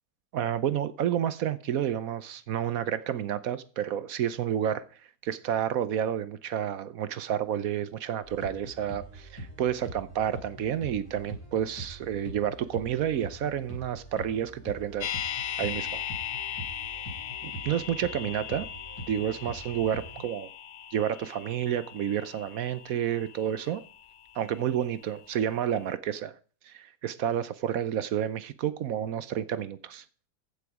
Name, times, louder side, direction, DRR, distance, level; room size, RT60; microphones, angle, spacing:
voice 1, 0.3-4.8 5.2-15.1 15.6-16.0 17.4-18.7 19.1-20.5 20.9-23.8 24.3-26.3 26.6-30.0, right 10 dB, 65° right, 1.1 m, -30 dB
sound 1, 8.2-20.2, right 1 dB, 15° left, 5.1 m, -43 dB
sound 2, 15.0-25.0 25.3-25.4, left 9 dB, 85° left, 0.5 m, -38 dB
15.0 x 7.0 x 4.8 m
omnidirectional pair, 1.7 m